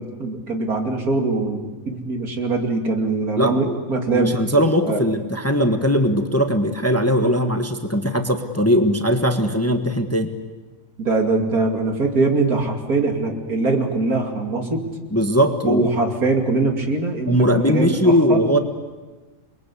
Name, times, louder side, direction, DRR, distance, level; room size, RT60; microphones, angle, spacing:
voice 1, 0.0-4.4 4.9-5.0 11.0-14.8 15.6-17.3 17.7-18.4, right 3 dB, 75° right, 3 dB, 3.1 m, -22 dB
voice 2, 3.4-3.8 4.1-10.3 15.1-15.9 17.2-18.6, equal, 10° left, 6 dB, 1.2 m, -19 dB
28.5 x 21.5 x 8.4 m, 1.3 s
omnidirectional pair, 1.6 m